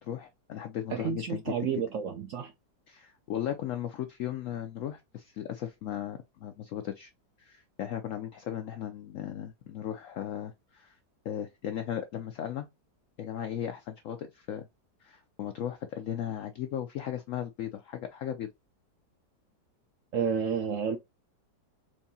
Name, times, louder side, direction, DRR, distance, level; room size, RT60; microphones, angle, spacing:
voice 1, 0.0-1.7 2.9-7.1 7.4-11.0 11.2-12.7 13.2-14.7 15.0-18.5, left 10 dB, 80° left, 0.7 m, -36 dB
voice 2, 0.9-2.5 20.1-21.0, right 7 dB, 70° right, 0.7 m, -30 dB
4.6 x 2.6 x 2.7 m
omnidirectional pair, 1.9 m